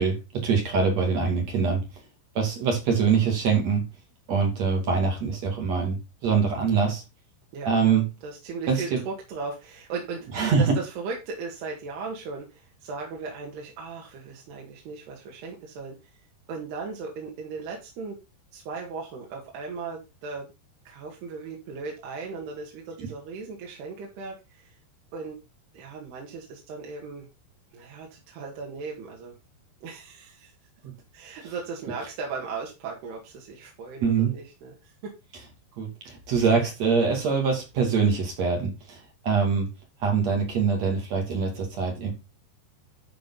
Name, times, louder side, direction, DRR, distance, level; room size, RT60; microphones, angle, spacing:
voice 1, 0.0-1.8 2.3-3.8 4.3-7.0 7.6-8.0 8.7-9.0 10.3-10.7 23.0-23.1 34.0-34.3 35.8-39.7 40.0-42.1, right 5 dB, 45° right, 1 dB, 3.4 m, -24 dB
voice 2, 7.5-16.2 16.5-18.2 18.5-20.5 20.9-24.8 25.1-25.4 25.7-27.3 27.7-29.4 29.8-30.5 31.1-35.1, right 4 dB, 70° right, -1 dB, 3.9 m, -37 dB
12.0 x 5.6 x 4.0 m, 0.26 s
omnidirectional pair, 5.0 m